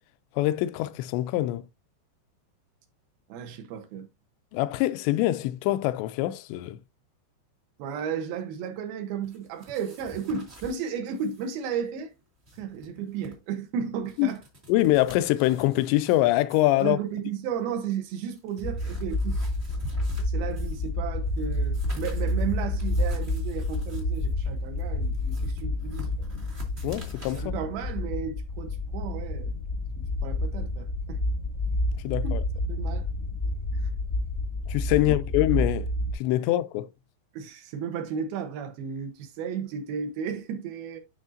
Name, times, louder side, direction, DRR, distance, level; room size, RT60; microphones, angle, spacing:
voice 1, 0.4-1.6 4.5-6.8 14.2-14.3 14.7-17.0 26.8-27.6 32.0-32.4 34.7-35.9 36.1-36.9, left 15 dB, 85° left, 2.7 m, -24 dB
voice 2, 3.3-4.1 7.8-12.1 12.6-14.4 16.8-19.4 20.2-26.3 27.3-29.5 30.0-31.2 32.2-32.4 32.7-33.1 33.7-33.8 35.0-35.2 37.3-41.0, right 7 dB, 70° right, 2.5 m, -34 dB
sound 1, 9.2-10.8 11.1-11.5 11.7-11.8 12.3-13.3 13.9-16.2 16.5-16.8 17.6-17.7 18.2-20.9 21.2-27.4, right 1 dB, 30° right, 1.1 m, -46 dB
sound 2, 18.6-36.1, left 1 dB, 35° left, 1.0 m, -29 dB
12.0 x 4.1 x 2.6 m
omnidirectional pair, 5.2 m